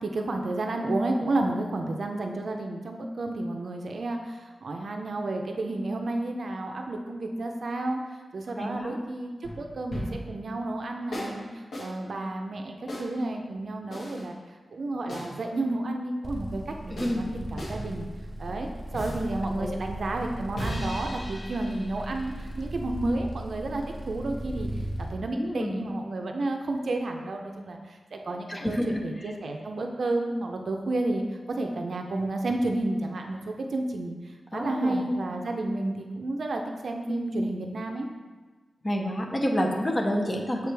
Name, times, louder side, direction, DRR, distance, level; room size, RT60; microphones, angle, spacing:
voice 1, 0.0-8.0 8.3-11.4 11.8-14.4 14.7-18.1 18.4-22.3 22.6-24.7 25.0-27.8 28.1-28.8 29.0-31.2 31.5-34.1 34.5-38.1, right 2 dB, 55° right, 3 dB, 0.5 m, -31 dB
voice 2, 8.6-9.0 16.9-17.2 19.6-19.7 25.3-25.9 28.5-29.3 34.5-35.1 38.8-40.7, equal, 20° left, 1 dB, 0.7 m, -29 dB
sound 1, 9.4-10.3 11.1-11.4 11.7-11.9 12.9-13.1 13.9-14.3 15.1-15.3 17.0-17.2 17.6-17.8 18.9-19.3 20.6-22.7, left 1 dB, 55° left, 1.5 m, -37 dB
sound 2, 16.2-25.1, right 1 dB, 15° right, 0.8 m, -37 dB
6.7 x 4.8 x 3.4 m, 1.3 s
wide cardioid pair, 170°, 0 cm